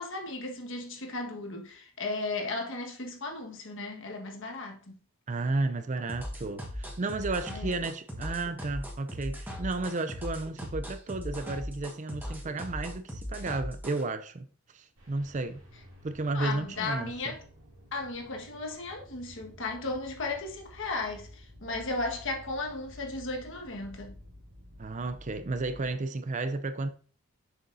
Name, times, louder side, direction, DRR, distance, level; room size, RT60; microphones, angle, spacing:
voice 1, 0.0-4.9 7.5-7.7 16.3-17.4 17.9-24.1, left 3 dB, 60° left, 1.5 m, -35 dB
voice 2, 5.3-14.5 14.7-15.6 16.0-17.3 24.8-26.9, right 3 dB, 35° right, 0.5 m, -33 dB
sound 1, 6.1-14.0, equal, 10° right, 1.4 m, -39 dB
sound 2, 15.0-25.9, left 1 dB, 65° right, 2.6 m, -51 dB
7.0 x 6.3 x 2.7 m
head